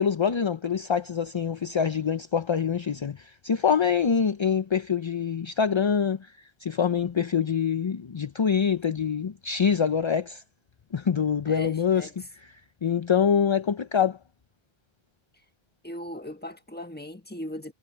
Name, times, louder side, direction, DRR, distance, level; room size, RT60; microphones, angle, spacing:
voice 1, 0.0-10.4 10.9-12.1 12.4-12.5 12.8-14.2, left 7 dB, 40° left, 0.5 m, -25 dB
voice 2, 7.3-7.7 11.4-12.1 15.8-17.7, equal, 10° left, 1.3 m, -38 dB
omnidirectional pair, 1.0 m